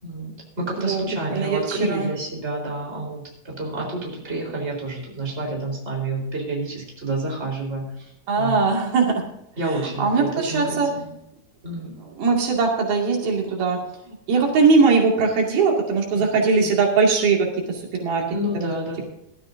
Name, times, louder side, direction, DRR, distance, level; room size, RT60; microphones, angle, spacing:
voice 1, 0.0-8.1 8.4-8.6 9.6-11.1 11.6-12.0 16.1-16.7 18.3-19.0, right 2 dB, 20° right, -1 dB, 4.1 m, -29 dB
voice 2, 1.3-2.1 8.3-9.1 9.7-10.9 12.0-13.8 14.1-18.2 18.5-18.8, right 4 dB, 85° right, 0 dB, 4.3 m, -20 dB
19.5 x 12.5 x 2.7 m, 0.82 s
omnidirectional pair, 4.2 m